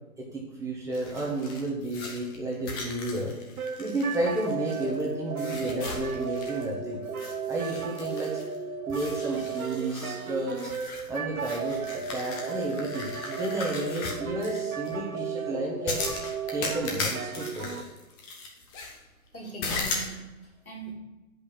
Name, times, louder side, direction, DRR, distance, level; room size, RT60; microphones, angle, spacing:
voice 1, 0.2-3.3 3.8-7.0 7.5-8.4 8.9-10.7 11.1-16.0 16.5-17.7, right 1 dB, 5° right, -5 dB, 1.2 m, -32 dB
sound 1, 0.9-5.0 5.4-6.7 7.1-8.6 8.9-14.9 15.9-19.0 19.6-20.1, left 3 dB, 10° left, 0.6 m, -37 dB
sound 2, 3.6-17.8, right 6 dB, 80° right, 0.9 m, -35 dB
voice 2, 19.3-20.9, right 2 dB, 80° left, -2 dB, 2.9 m, -41 dB
8.1 x 5.3 x 5.9 m, 1.1 s
figure-of-eight pair, 130°, 42 cm